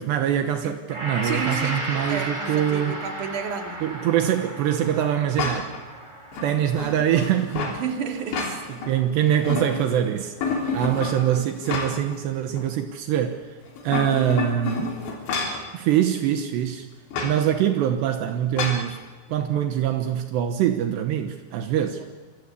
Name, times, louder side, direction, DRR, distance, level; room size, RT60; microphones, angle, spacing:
voice 1, 0.0-3.0 3.8-5.8 6.4-7.8 8.9-10.4 10.7-13.6 13.8-15.0 15.7-16.9 17.2-19.0 19.3-22.0, right 10 dB, 75° right, 3.3 m, -24 dB
Gong, 0.9-9.3 9.7-9.8, right 1 dB, 15° right, 5.5 m, -35 dB
voice 2, 1.2-3.9 7.7-8.7 10.8-11.2 17.1-17.4 21.9-22.1, right 6 dB, 50° right, 3.6 m, -32 dB
sound 1, 5.4-5.8 6.3-7.8 8.2-8.9 9.3-10.0 10.4-12.2 12.6-12.7 13.7-15.7 17.1-17.4 18.6-18.9, left 4 dB, 85° left, 5.8 m, -29 dB
28.0 x 24.5 x 8.4 m
omnidirectional pair, 5.1 m